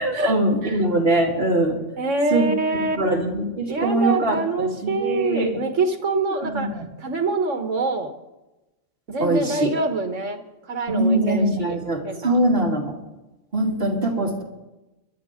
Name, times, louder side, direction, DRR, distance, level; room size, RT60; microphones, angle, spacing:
voice 1, 0.0-1.8 2.3-2.5 3.0-5.6 6.4-6.9 9.2-9.7 10.9-12.9 13.5-14.4, right 1 dB, 50° right, -2 dB, 2.8 m, -22 dB
voice 2, 2.0-3.0 3.7-6.7 7.0-8.1 9.1-10.4 10.7-11.8 12.0-12.4, right 3 dB, 75° right, 6 dB, 1.8 m, -25 dB
22.5 x 11.5 x 3.7 m, 1.0 s
omnidirectional pair, 1.3 m